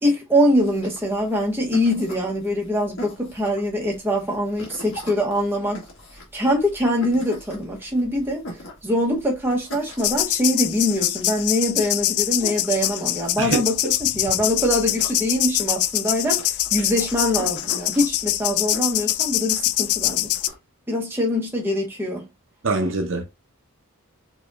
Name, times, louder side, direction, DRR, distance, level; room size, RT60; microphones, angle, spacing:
voice 1, 0.0-5.8 6.3-8.4 8.8-16.4 16.7-20.3 20.9-22.2, equal, 10° right, 0.9 m, -23 dB
sound 1, 0.6-20.5, equal, 60° left, 1.5 m, -42 dB
sound 2, 10.0-20.5, left 15 dB, 85° left, 0.3 m, -24 dB
voice 2, 22.6-23.2, right 3 dB, 60° right, 0.7 m, -23 dB
4.8 x 2.8 x 2.4 m
head